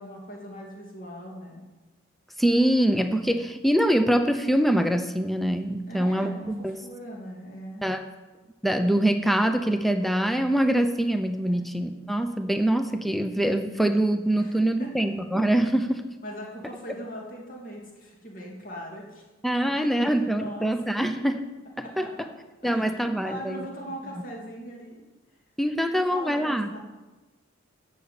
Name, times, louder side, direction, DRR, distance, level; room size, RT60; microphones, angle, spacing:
voice 1, 0.0-1.6 5.9-7.9 11.5-11.7 14.4-15.1 16.2-19.2 19.6-20.7 21.0-21.2 21.8-22.1 22.6-25.0 25.9-26.8, equal, 40° left, -1 dB, 2.7 m, -40 dB
voice 2, 2.4-6.7 7.8-8.0 8.6-16.0 19.4-21.4 21.8-22.3 22.6-23.7 25.6-26.7, right 1 dB, ahead, 7 dB, 0.6 m, -24 dB
13.5 x 6.0 x 8.5 m, 1.2 s
head